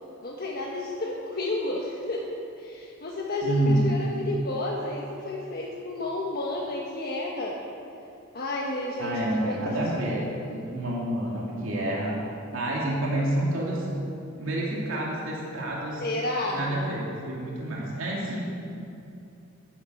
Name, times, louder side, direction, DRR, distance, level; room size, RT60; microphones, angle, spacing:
voice 1, 0.2-7.6 8.3-9.8 16.0-16.7, left 2 dB, 50° left, -2 dB, 1.4 m, -31 dB
voice 2, 3.4-3.8 9.0-12.1 12.5-13.9 14.4-16.0 16.5-18.4, right 1 dB, 70° right, -4 dB, 2.9 m, -28 dB
12.5 x 10.5 x 7.8 m, 2.7 s
head